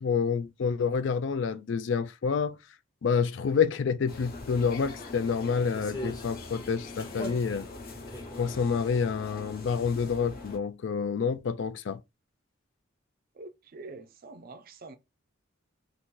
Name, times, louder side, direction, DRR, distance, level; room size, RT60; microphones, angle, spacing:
voice 1, 0.0-2.6 3.0-7.7 8.4-12.0, left 6 dB, 65° left, 0.4 m, -28 dB
sound 1, 4.1-10.6, left 2 dB, 50° left, 0.9 m, -43 dB
sound 2, 4.4-4.5 5.2-6.3 7.0-9.2 9.5-10.0 10.4-10.5, equal, 20° left, 0.7 m, -42 dB
voice 2, 13.3-15.0, right 3 dB, 45° right, 0.5 m, -45 dB
2.8 x 2.5 x 3.7 m
head